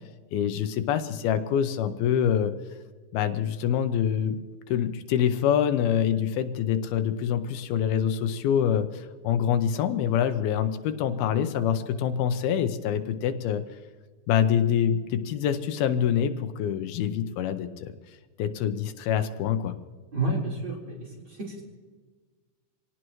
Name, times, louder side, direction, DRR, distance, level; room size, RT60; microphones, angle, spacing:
voice 1, 0.3-2.5 3.1-4.4 4.7-13.6 14.3-17.9 18.4-19.8, left 9 dB, 80° left, 9 dB, 2.7 m, -25 dB
voice 2, 20.1-21.6, right 2 dB, 30° right, -4 dB, 4.6 m, -30 dB
26.0 x 18.0 x 3.1 m, 1.4 s
omnidirectional pair, 4.4 m